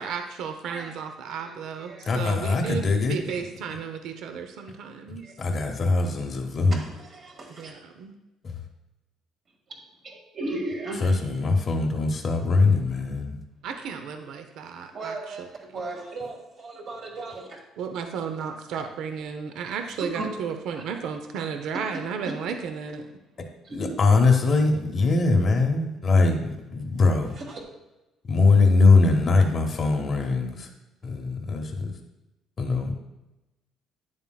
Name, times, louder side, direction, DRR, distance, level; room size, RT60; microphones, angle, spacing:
voice 1, 0.0-2.8 3.1-5.2 7.6-8.1 13.6-15.5 17.8-23.0, right 6 dB, 70° right, 6 dB, 0.7 m, -33 dB
voice 2, 0.7-1.0 1.3-2.1 5.2-5.3 6.7-7.7 9.7-9.8 10.0-11.2 14.9-15.5 15.7-17.6 20.1-20.3 23.6-23.9 27.3-27.6, right 2 dB, 40° right, 0 dB, 1.8 m, -36 dB
voice 3, 2.1-3.5 5.4-6.8 8.4-8.5 11.0-13.4 23.7-27.4 28.3-30.7 31.0-31.9 32.6-32.9, left 3 dB, 30° left, 2 dB, 0.8 m, -22 dB
9.6 x 7.3 x 2.3 m, 0.99 s
cardioid pair, 150°, 0 cm